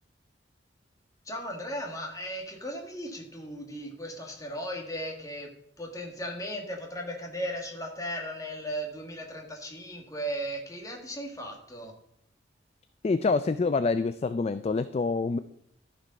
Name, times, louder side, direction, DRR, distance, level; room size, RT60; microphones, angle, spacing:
voice 1, 1.3-5.5 5.8-11.9, equal, 20° left, 1 dB, 1.8 m, -36 dB
voice 2, 13.0-15.4, left 4 dB, 35° left, 12 dB, 0.3 m, -26 dB
13.5 x 5.2 x 5.4 m, 0.75 s
head